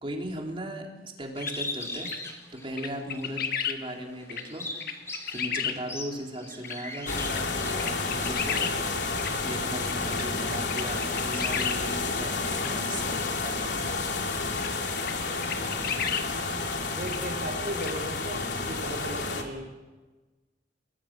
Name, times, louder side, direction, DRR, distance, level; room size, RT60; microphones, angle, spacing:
voice 1, 0.0-0.9 1.2-2.1 2.5-4.7 5.3-8.8 9.3-13.8, right 1 dB, 30° right, 0 dB, 4.0 m, -37 dB
sound 1, 1.4-1.5 2.0-2.2 2.8-3.8 4.3-4.4 4.8-5.8 6.6-6.8 7.3-7.4 7.8-8.7 9.2-9.3 9.9-10.2 10.5-11.8 12.6-12.7 14.6-14.7 15.0-15.1 15.4-16.3 17.1-17.2 17.8-17.9, left 7 dB, 55° left, 1.8 m, -32 dB
Bird, 1.4-3.3 3.8-8.3, left 2 dB, 15° left, 3.6 m, -39 dB
sound 2, 7.1-19.4, left 3 dB, 70° left, 3.1 m, -30 dB
voice 2, 16.9-19.8, right 1 dB, 50° right, 3 dB, 5.3 m, -37 dB
29.5 x 20.5 x 6.3 m, 1.2 s
head